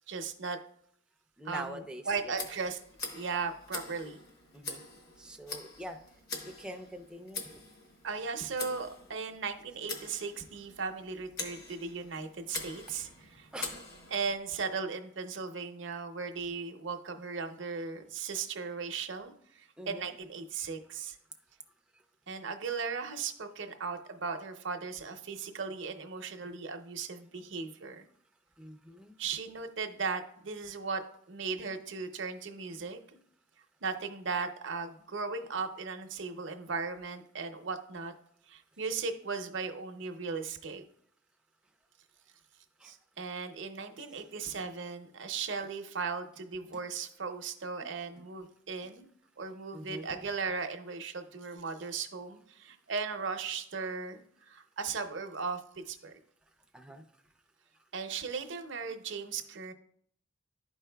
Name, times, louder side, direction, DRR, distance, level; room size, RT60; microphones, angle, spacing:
voice 1, 0.1-0.6 1.4-2.8 3.1-4.2 8.0-13.5 14.1-21.2 22.3-28.1 29.2-31.0 31.3-33.0 33.8-38.1 38.5-40.8 42.8-49.1 49.4-56.1 57.9-59.7, right 5 dB, 65° right, 6 dB, 0.7 m, -37 dB
voice 2, 1.4-2.4 4.5-4.8 5.2-6.0 6.4-7.4 13.5-13.8 19.8-20.1 28.6-29.1 42.8-42.9 47.8-47.9 49.7-50.1 56.7-57.0, right 1 dB, 5° right, 4 dB, 0.4 m, -44 dB
Tick, 2.3-14.4, left 3 dB, 50° left, 1.1 m, -44 dB
12.0 x 4.6 x 2.2 m, 0.66 s
head